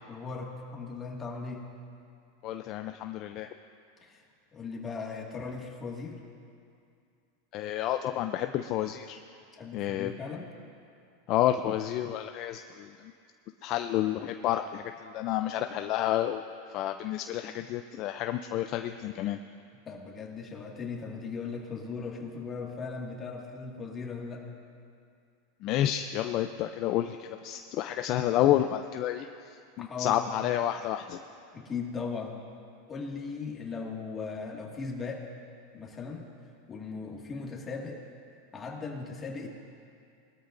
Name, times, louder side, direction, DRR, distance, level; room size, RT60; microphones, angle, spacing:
voice 1, 0.1-1.7 4.0-4.2 4.5-6.2 9.6-10.5 19.9-24.4 29.8-30.2 31.5-32.4 32.9-35.3 35.7-36.2 36.7-38.0 38.5-39.5, left 4 dB, 20° left, -1 dB, 1.9 m, -38 dB
voice 2, 2.4-3.5 7.5-9.2 9.7-10.1 11.3-12.9 13.6-16.4 16.7-19.4 25.6-29.3 29.8-31.2, left 12 dB, 45° left, 7 dB, 0.4 m, -30 dB
21.5 x 13.0 x 2.6 m, 2.4 s
supercardioid pair, 140°, 0 cm